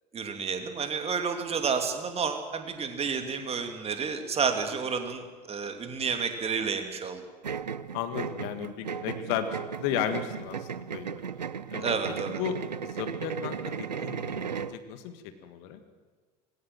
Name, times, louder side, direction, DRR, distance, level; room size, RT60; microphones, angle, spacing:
voice 1, 0.1-7.2 11.8-12.4, right 5 dB, 30° right, 6 dB, 2.8 m, -30 dB
sound 1, 7.4-14.8, right 6 dB, 85° right, 0.6 m, -36 dB
voice 2, 7.9-11.2 11.7-11.9 12.4-12.6 12.8-15.8, left 9 dB, 55° left, 9 dB, 1.9 m, -34 dB
20.0 x 17.0 x 7.7 m, 1.5 s
figure-of-eight pair, 70°, 21 cm